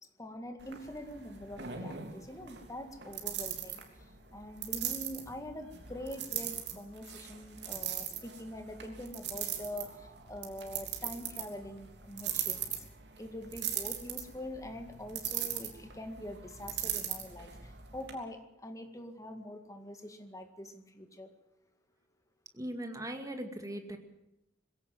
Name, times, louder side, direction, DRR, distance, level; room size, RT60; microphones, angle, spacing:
voice 1, 0.0-3.8 4.3-12.8 13.2-21.3, left 1 dB, 20° left, 7 dB, 1.9 m, -44 dB
sound 1, 0.6-18.1, right 9 dB, 65° right, 3.3 m, -40 dB
voice 2, 22.5-24.0, right 1 dB, 20° right, 5 dB, 2.3 m, -39 dB
21.0 x 17.0 x 7.7 m, 0.92 s
head